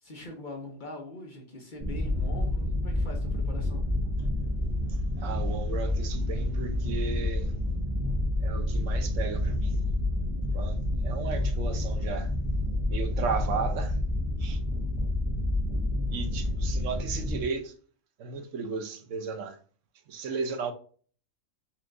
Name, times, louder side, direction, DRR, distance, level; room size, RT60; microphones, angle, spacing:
voice 1, 0.0-3.8, left 2 dB, 45° left, 0.8 m, -42 dB
sound 1, 1.8-17.4, left 1 dB, 25° right, 0.7 m, -29 dB
voice 2, 4.9-7.5 8.4-9.8 10.5-12.3 12.9-14.0 14.4-14.6 16.1-17.7 18.2-19.6 20.1-20.7, right 5 dB, 70° right, 1.0 m, -35 dB
4.4 x 2.4 x 3.7 m
omnidirectional pair, 1.4 m